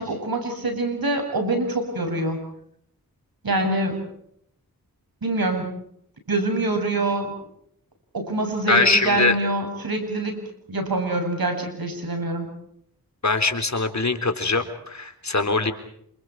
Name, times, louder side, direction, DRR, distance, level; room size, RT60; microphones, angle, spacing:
voice 1, 0.0-2.4 3.4-4.0 5.2-5.7 6.3-7.3 8.1-10.4 10.7-12.5, right 2 dB, 65° right, 5 dB, 7.9 m, -25 dB
voice 2, 8.7-9.4 13.2-15.7, left 3 dB, 45° left, 8 dB, 3.7 m, -22 dB
29.5 x 27.0 x 4.8 m, 0.70 s
cardioid pair, 45°, 38 cm